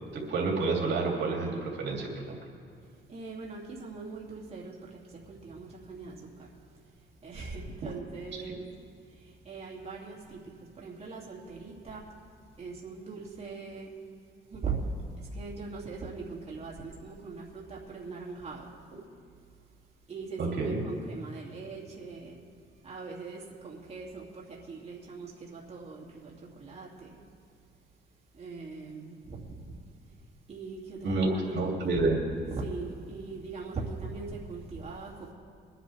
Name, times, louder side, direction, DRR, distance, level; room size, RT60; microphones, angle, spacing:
voice 1, 0.1-2.3 7.8-7.9 8.5-8.6 20.4-20.8 31.0-32.2, right 3 dB, 60° right, -1 dB, 2.9 m, -29 dB
voice 2, 3.1-6.5 7.2-8.7 9.0-12.1 12.6-13.9 14.5-14.8 15.2-18.7 20.1-22.4 22.8-27.2 28.3-29.8 30.5-31.9 32.3-35.3, right 4 dB, 30° right, -4 dB, 2.6 m, -41 dB
23.0 x 10.0 x 3.5 m, 2.3 s
cardioid pair, 90°, 20 cm